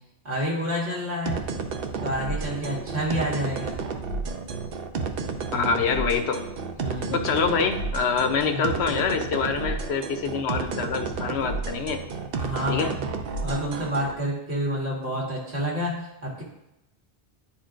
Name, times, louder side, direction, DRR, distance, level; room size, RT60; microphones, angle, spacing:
voice 1, 0.2-1.5 2.0-3.8 6.8-7.3 8.5-8.8 12.4-13.1 13.4-16.4, equal, 85° right, -5 dB, 2.0 m, -29 dB
sound 1, 1.3-14.1, right 4 dB, 65° right, 0.8 m, -31 dB
voice 2, 5.5-6.4 7.1-12.0 12.7-12.9, left 5 dB, 90° left, 6 dB, 0.9 m, -25 dB
10.0 x 4.3 x 2.5 m, 0.88 s
omnidirectional pair, 1.1 m